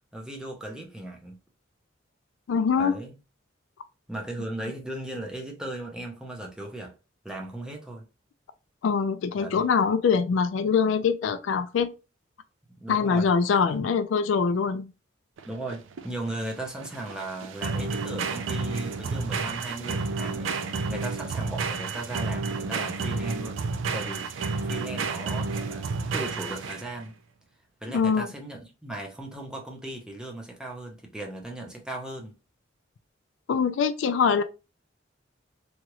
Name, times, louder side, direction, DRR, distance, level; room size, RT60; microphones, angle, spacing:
voice 1, 0.1-1.4 2.8-3.1 4.1-6.9 7.2-8.0 9.4-9.6 12.8-13.3 13.6-13.8 15.5-23.7 23.9-27.1 27.8-32.3, right 1 dB, 5° right, 0.6 m, -37 dB
voice 2, 2.5-3.0 8.8-11.9 12.9-14.9 27.9-28.3 33.5-34.4, left 6 dB, 75° left, 0.3 m, -23 dB
sound 1, 15.4-27.0, right 4 dB, 75° right, 0.4 m, -31 dB
2.9 x 2.4 x 2.9 m
head